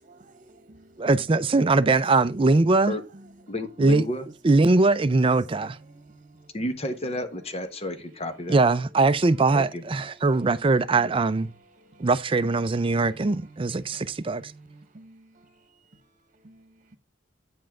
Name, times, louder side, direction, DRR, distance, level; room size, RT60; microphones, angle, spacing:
voice 1, 0.2-1.1 5.4-6.5 10.4-10.6 11.8-12.1 12.9-15.5 16.4-17.0, right 2 dB, 45° right, 1.3 m, -51 dB
voice 2, 1.0-3.0 3.8-4.0 4.4-5.8 8.5-11.5 12.0-14.4, right 3 dB, 30° right, 0.5 m, -21 dB
voice 3, 3.5-4.3 6.5-8.6 9.5-9.8, left 1 dB, 35° left, 1.2 m, -31 dB
8.8 x 5.5 x 3.6 m
head